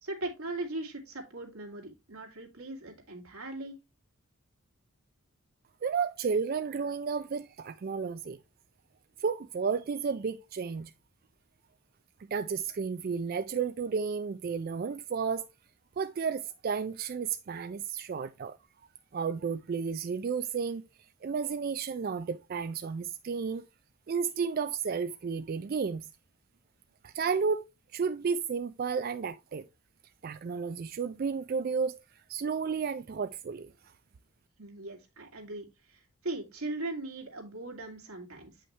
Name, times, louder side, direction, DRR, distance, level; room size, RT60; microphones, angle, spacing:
voice 1, 0.0-3.8 34.6-38.5, right 2 dB, 85° right, 2.4 m, -39 dB
voice 2, 5.8-8.4 9.2-10.9 12.3-15.5 16.0-18.6 19.1-20.8 21.2-23.6 24.1-26.1 27.0-27.6 27.9-29.7 30.2-32.0 32.3-33.7, right 5 dB, 45° right, 0.3 m, -32 dB
8.6 x 5.6 x 3.1 m
head